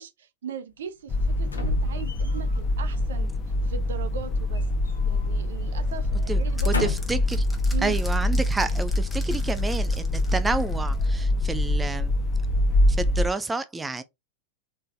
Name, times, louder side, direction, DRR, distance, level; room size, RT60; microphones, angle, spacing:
voice 1, 0.0-3.3 3.6-4.6 5.1-6.9 7.7-8.0, right 7 dB, 60° right, 0.8 m, -39 dB
sound 1, 1.1-13.3, left 1 dB, 30° left, 0.9 m, -25 dB
sound 2, 1.5-2.6 4.1-5.3 5.6-5.8 6.4-7.3 8.0-8.1, left 6 dB, 75° left, 1.3 m, -33 dB
sound 3, 5.9-11.4, left 2 dB, 10° left, 1.2 m, -46 dB
voice 2, 6.7-7.4 7.8-12.1 13.0-14.0, right 3 dB, 10° right, 0.5 m, -29 dB
4.0 x 3.8 x 3.3 m
figure-of-eight pair, 90°, 0 cm